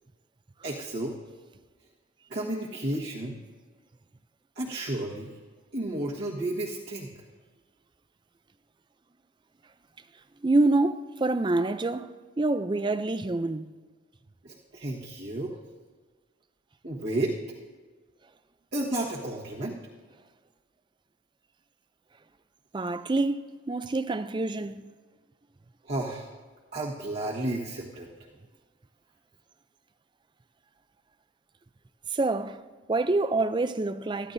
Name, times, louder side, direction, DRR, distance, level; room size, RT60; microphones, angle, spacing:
voice 1, 0.6-1.2 2.3-3.4 4.5-5.3 5.7-7.1 14.4-15.6 16.8-17.4 18.7-19.8 25.8-26.3 26.7-28.1, right 1 dB, 50° right, 1.4 m, -32 dB
voice 2, 10.4-12.1 12.4-13.7 22.7-24.8 32.1-32.6 32.9-34.3, right 2 dB, 20° right, 0.4 m, -26 dB
24.0 x 14.0 x 2.7 m
head